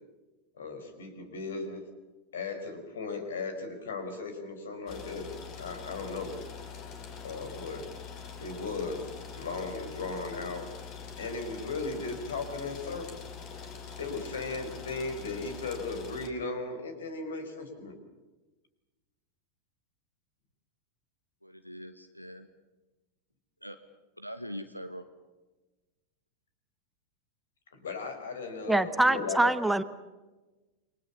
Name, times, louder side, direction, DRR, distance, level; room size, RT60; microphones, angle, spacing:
voice 1, 0.6-1.8 2.3-5.3 5.6-6.4 7.2-7.9 8.4-9.1 9.3-10.7 11.2-13.2 14.0-18.0 27.7-29.5, left 3 dB, 65° left, 8 dB, 5.1 m, -36 dB
sound 1, 4.9-16.3, left 6 dB, 40° left, 4.2 m, -44 dB
voice 2, 21.4-22.5 23.6-23.8 24.2-25.0, equal, 90° left, 9 dB, 1.4 m, -42 dB
voice 3, 28.7-29.8, right 2 dB, 5° right, 11 dB, 1.2 m, -24 dB
29.0 x 23.5 x 7.2 m, 1.2 s
figure-of-eight pair, 90°, 0 cm